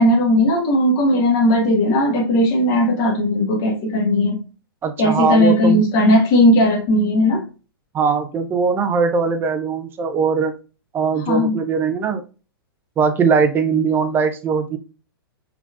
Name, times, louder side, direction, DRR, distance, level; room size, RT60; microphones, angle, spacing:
voice 1, 0.0-4.4 5.0-7.4 11.3-11.6, left 1 dB, 35° left, 0 dB, 1.4 m, -17 dB
voice 2, 4.8-5.8 7.9-10.5 10.9-12.2 13.0-14.8, right 5 dB, 15° right, 8 dB, 0.5 m, -20 dB
4.2 x 3.3 x 2.4 m, 0.33 s
figure-of-eight pair, 105°, 13 cm